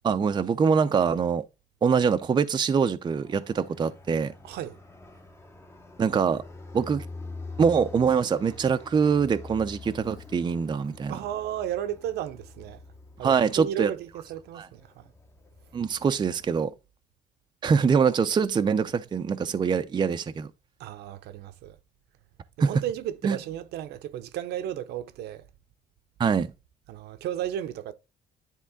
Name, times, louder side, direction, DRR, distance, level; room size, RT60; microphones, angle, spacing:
voice 1, 0.0-1.4 1.8-4.3 6.0-6.4 6.7-7.0 7.6-11.1 13.2-13.9 14.5-14.7 15.7-16.7 17.6-20.5 22.6-22.7 23.2-23.4 26.2-26.5, right 6 dB, 25° right, 0.5 m, -24 dB
Fixed-wing aircraft airplane, 3.1-16.6, left 3 dB, 15° left, 0.9 m, -45 dB
voice 2, 4.4-4.8 11.1-12.8 13.2-15.1 20.8-21.8 22.6-25.4 26.9-27.9, right 11 dB, 75° right, 0.8 m, -34 dB
10.0 x 3.7 x 3.5 m
cardioid pair, 110°, 17 cm